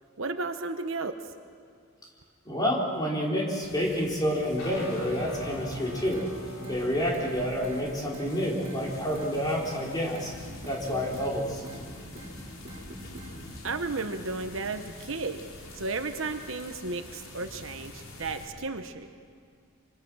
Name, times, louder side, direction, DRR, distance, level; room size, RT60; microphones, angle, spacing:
voice 1, 0.2-1.2 13.6-15.4 15.7-19.1, right 3 dB, 65° right, 7 dB, 1.2 m, -33 dB
voice 2, 2.4-6.2 6.7-10.3 10.6-11.6, equal, 20° left, -3 dB, 4.6 m, -29 dB
sound 1, 3.6-18.5, left 1 dB, 70° left, 3.5 m, -46 dB
sound 2, 4.6-13.5, left 1 dB, 90° left, 3.6 m, -46 dB
sound 3, 6.1-6.3 6.6-7.3 7.6-7.8 8.1-8.3 8.6-9.3 9.6-9.8 10.1-10.3 10.6-11.3 11.6-11.8 12.1-12.3 12.6-13.3 13.6-13.8, equal, 35° right, 4.8 m, -45 dB
26.0 x 25.5 x 6.4 m, 2.2 s
head